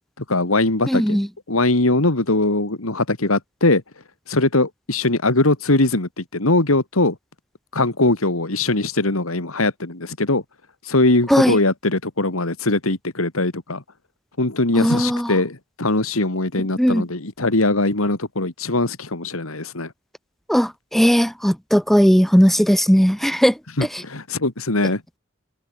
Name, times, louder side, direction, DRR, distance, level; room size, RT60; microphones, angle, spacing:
voice 1, 0.2-1.2 1.5-3.8 4.3-7.2 7.7-10.4 10.9-13.8 14.4-19.9 23.8-25.0, left 2 dB, 85° left, 2.6 m, -21 dB
voice 2, 0.9-1.3 11.3-11.6 14.8-15.3 16.8-17.0 20.5-23.6 23.9-24.0, equal, ahead, 0.7 m, -17 dB
head